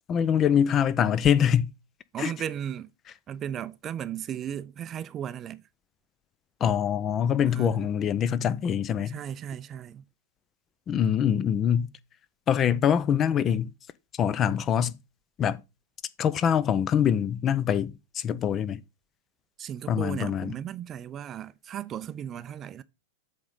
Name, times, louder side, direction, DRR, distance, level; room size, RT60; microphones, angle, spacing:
voice 1, 0.1-1.7 2.2-2.3 6.6-9.2 10.9-11.9 12.5-13.7 14.2-15.0 15.4-15.6 16.2-18.8 19.9-20.5, left 8 dB, 30° left, 0.5 m, -24 dB
voice 2, 2.1-2.9 3.3-5.6 7.5-7.7 9.1-10.0 19.6-22.8, right 9 dB, 30° right, 0.5 m, -36 dB
7.7 x 3.8 x 5.5 m
figure-of-eight pair, 100°, 0 cm